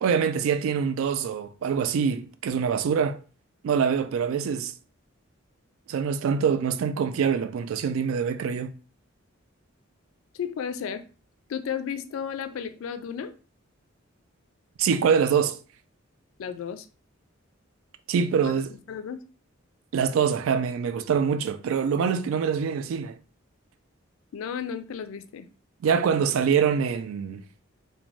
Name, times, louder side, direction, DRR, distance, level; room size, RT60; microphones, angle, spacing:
voice 1, 0.0-3.2 3.6-4.7 5.9-8.7 14.8-15.6 18.1-18.7 19.9-23.2 25.8-27.4, right 7 dB, 75° right, 0.3 m, -24 dB
voice 2, 10.3-11.0 11.5-13.3 16.4-16.9 18.4-19.2 24.3-25.5, left 7 dB, 75° left, 0.3 m, -33 dB
2.5 x 2.2 x 3.1 m
head